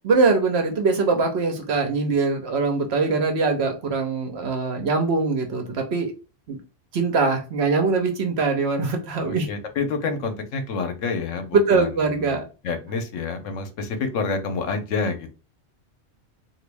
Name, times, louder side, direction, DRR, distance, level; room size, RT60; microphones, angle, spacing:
voice 1, 0.0-6.1 6.5-6.6 6.9-9.5 11.5-12.4, right 4 dB, 60° right, 4 dB, 1.0 m, -22 dB
voice 2, 9.3-11.9 12.3-15.3, left 4 dB, 85° left, 7 dB, 1.1 m, -28 dB
2.9 x 2.6 x 3.4 m, 0.33 s
omnidirectional pair, 1.3 m